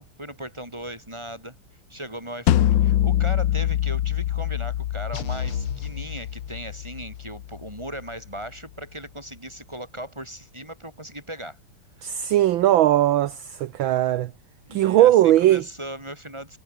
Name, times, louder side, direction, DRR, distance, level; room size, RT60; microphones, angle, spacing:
voice 1, 0.0-1.6 1.9-11.6 14.7-16.6, right 1 dB, 10° right, 7.4 m, -38 dB
sound 1, 2.5-7.5, left 12 dB, 65° left, 1.3 m, -24 dB
sound 2, 5.1-7.0, left 6 dB, 85° left, 3.4 m, -34 dB
voice 2, 12.0-14.3 14.7-15.6, right 13 dB, 70° right, 1.5 m, -19 dB
omnidirectional pair, 2.4 m